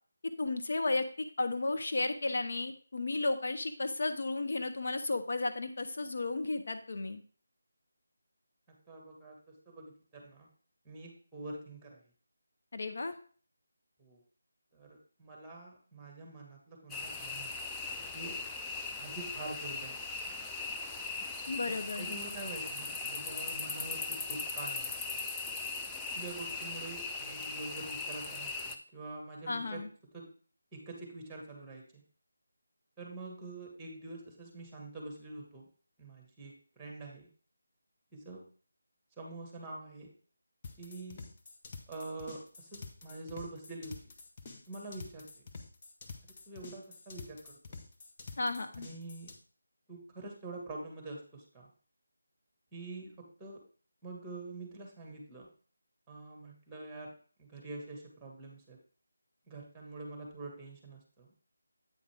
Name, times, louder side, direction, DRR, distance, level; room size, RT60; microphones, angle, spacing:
voice 1, 0.2-1.1 1.4-7.2 12.7-13.1 21.5-22.1 29.5-29.9 48.4-48.9, left 2 dB, 55° left, 7 dB, 0.7 m, -33 dB
voice 2, 8.9-10.5 10.8-12.0 14.0-14.2 14.7-17.5 18.1-18.4 19.0-19.9 21.7-25.1 26.1-29.8 30.1-30.3 30.7-32.0 33.0-35.7 36.0-37.3 38.1-38.5 39.2-40.1 40.8-41.3 41.9-43.9 44.7-45.3 46.5-47.8 48.8-49.3 49.9-51.7 52.7-53.6 54.0-55.5 56.1-58.8 59.5-61.3, right 2 dB, 10° right, 1 dB, 1.7 m, -46 dB
sound 1, 16.9-28.8, left 4 dB, 10° left, 0.4 m, -39 dB
sound 2, 40.6-49.4, left 4 dB, 30° left, 0.9 m, -48 dB
8.5 x 5.0 x 3.5 m, 0.43 s
figure-of-eight pair, 160°, 0 cm